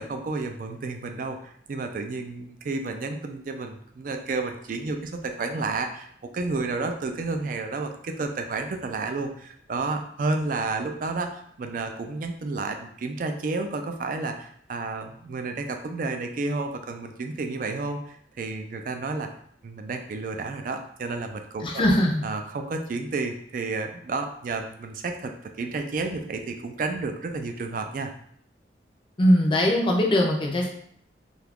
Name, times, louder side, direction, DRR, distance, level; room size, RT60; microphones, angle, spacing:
voice 1, 0.0-19.3 19.6-21.8 22.2-28.1, right 3 dB, 45° right, 5 dB, 0.3 m, -31 dB
voice 2, 21.6-22.2 29.2-30.7, equal, 25° left, 0 dB, 0.5 m, -21 dB
2.8 x 2.3 x 3.5 m, 0.64 s
head